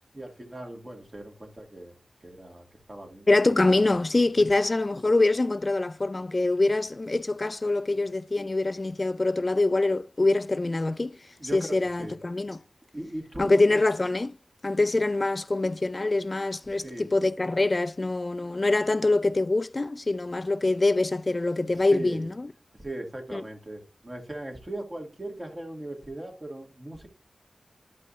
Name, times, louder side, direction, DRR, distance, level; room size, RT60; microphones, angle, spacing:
voice 1, 0.1-1.9 2.2-3.3 4.4-4.5 11.4-12.2 12.9-13.5 16.7-17.2 21.6-22.3 22.8-27.1, right 1 dB, 35° right, 2.3 m, -39 dB
voice 2, 3.3-12.6 13.4-14.3 14.6-22.5 23.3-23.4, left 2 dB, 40° left, 0.4 m, -24 dB
11.5 x 5.4 x 2.7 m
cardioid pair, 50°, 0 cm